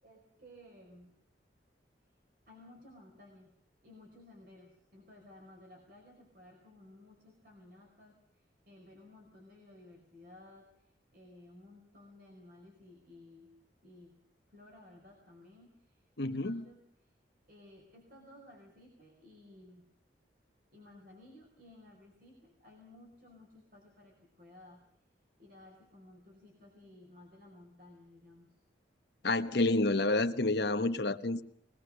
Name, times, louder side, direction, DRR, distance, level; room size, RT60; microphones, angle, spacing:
voice 1, 0.0-1.2 2.5-3.5 3.8-13.5 13.8-14.1 14.5-17.1 17.5-19.9 20.7-24.8 25.4-28.6, left 1 dB, 50° right, 0 dB, 4.7 m, -56 dB
voice 2, 16.2-16.6 29.2-31.4, left 2 dB, 65° left, 7 dB, 1.2 m, -29 dB
21.5 x 20.0 x 6.5 m, 0.66 s
head